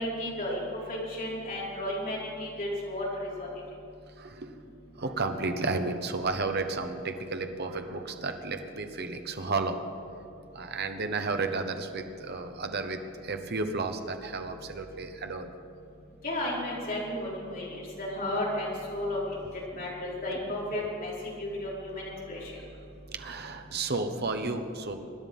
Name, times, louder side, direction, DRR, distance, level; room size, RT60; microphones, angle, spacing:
voice 1, 0.0-3.5 16.2-19.2 19.7-21.1 21.4-22.5, left 1 dB, 40° left, -5 dB, 4.8 m, -33 dB
voice 2, 4.2-4.5 5.0-9.8 10.1-10.2 10.5-15.5 22.5-25.0, right 3 dB, 50° right, 6 dB, 1.2 m, -33 dB
25.0 x 10.5 x 5.5 m, 2.7 s
head